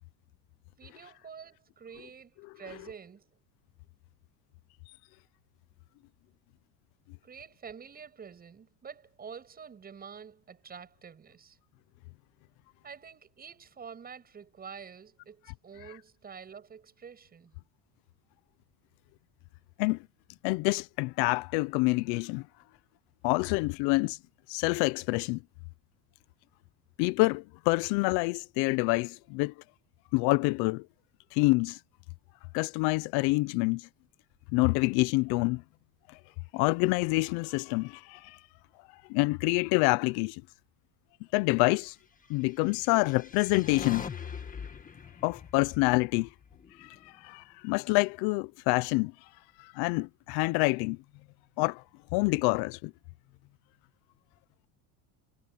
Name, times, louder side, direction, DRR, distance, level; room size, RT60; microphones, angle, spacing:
voice 1, 0.8-3.4 7.2-11.6 12.8-17.6, right 6 dB, 20° right, 8.0 m, -48 dB
voice 2, 20.4-22.4 23.2-24.2 24.5-25.4 27.0-29.5 30.1-30.9 31.3-31.8 32.5-33.9 34.5-35.6 36.5-38.4 39.1-40.4 41.3-41.9 42.3-44.0 45.2-46.3 46.8-47.0 47.2-49.1 49.6-51.0 51.6-51.8 52.1-52.9, left 25 dB, 70° left, 0.6 m, -27 dB
sound 1, 42.7-47.0, left 6 dB, 20° left, 1.7 m, -42 dB
cardioid pair, 160°, 40 cm